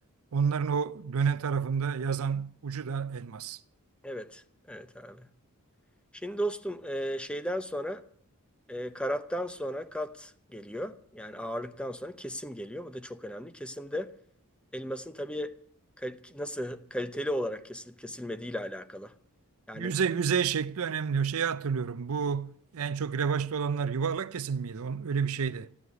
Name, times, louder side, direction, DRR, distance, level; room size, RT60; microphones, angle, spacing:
voice 1, 0.3-3.6 19.7-25.7, right 6 dB, 70° right, 0.5 m, -29 dB
voice 2, 4.0-5.3 6.1-8.0 8.7-14.1 14.7-15.6 16.0-19.1 19.7-19.9, equal, 5° left, 0.7 m, -35 dB
14.0 x 9.7 x 9.5 m
head